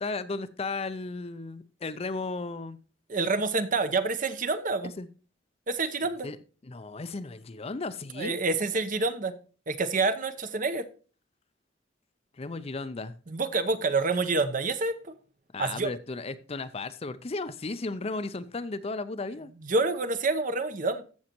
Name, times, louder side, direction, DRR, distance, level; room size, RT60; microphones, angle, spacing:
voice 1, 0.0-2.8 4.8-5.1 6.2-6.4 6.6-8.4 12.4-13.1 15.5-19.5, left 3 dB, 30° left, 13 dB, 0.5 m, -35 dB
voice 2, 3.1-4.9 5.7-6.3 8.2-9.3 9.7-10.9 13.3-15.0 15.6-15.9 19.6-21.0, right 3 dB, 45° right, 11 dB, 0.8 m, -27 dB
14.5 x 6.3 x 2.9 m, 0.38 s
head